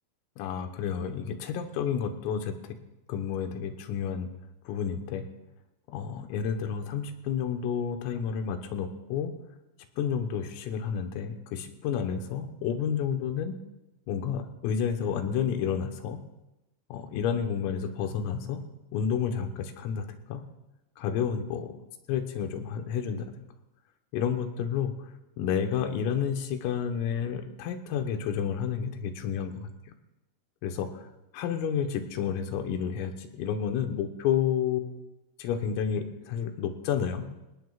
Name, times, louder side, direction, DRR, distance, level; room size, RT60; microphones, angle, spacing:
voice 1, 0.4-2.8 3.1-4.3 4.7-5.3 5.9-9.3 10.0-13.6 14.1-16.2 16.9-18.7 18.9-20.4 21.0-21.7 22.1-23.4 24.1-24.9 25.4-29.7 30.6-31.0 31.3-35.0 35.4-37.3, left 7 dB, 85° left, 5 dB, 3.8 m, -30 dB
26.0 x 17.5 x 2.4 m, 0.97 s
omnidirectional pair, 5.8 m